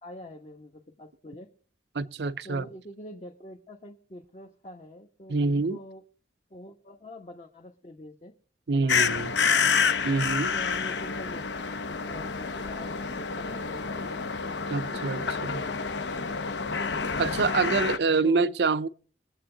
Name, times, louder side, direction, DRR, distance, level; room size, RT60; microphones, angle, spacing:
voice 1, 0.0-1.5 2.4-6.0 6.5-8.3 8.7-9.6 10.5-16.8 18.2-18.5, left 1 dB, 35° left, 1.1 m, -45 dB
voice 2, 1.9-2.7 5.3-5.8 8.7-9.3 10.0-10.5 14.7-15.6 17.2-18.9, right 4 dB, 65° right, 0.5 m, -26 dB
sound 1, 8.9-18.0, left 5 dB, 80° left, 0.8 m, -28 dB
23.0 x 7.9 x 3.9 m
head